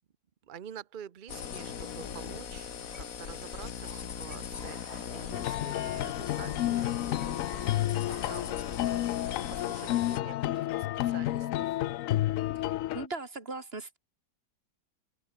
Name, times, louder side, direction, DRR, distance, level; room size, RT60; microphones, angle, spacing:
voice 1, 0.4-11.8, right 9 dB, 65° right, 0.5 m, -48 dB
sound 1, 1.3-10.2, left 8 dB, 55° left, 1.5 m, -39 dB
sound 2, 1.9-9.4, left 3 dB, 35° left, 3.4 m, -51 dB
sound 3, 5.3-13.1, left 14 dB, 80° left, 0.7 m, -31 dB
voice 2, 12.5-14.0, right 3 dB, 30° right, 3.0 m, -39 dB
open air
omnidirectional pair, 1.9 m